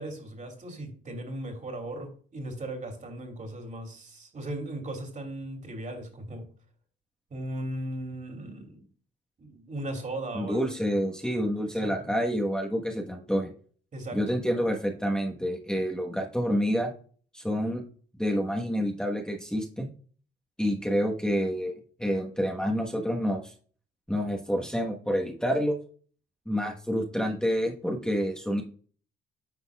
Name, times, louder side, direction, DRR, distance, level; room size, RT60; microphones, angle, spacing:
voice 1, 0.0-6.4 7.3-8.8 9.4-10.7 11.8-12.2 13.9-14.3, right 1 dB, 40° right, 3 dB, 2.8 m, -37 dB
voice 2, 10.3-13.5 14.1-16.9 17.3-17.8 18.2-19.9 20.6-21.7 22.0-23.5 24.1-25.7 26.5-28.6, equal, 5° left, 0 dB, 1.3 m, -28 dB
9.9 x 5.5 x 2.4 m, 0.43 s
cardioid pair, 90°, 20 cm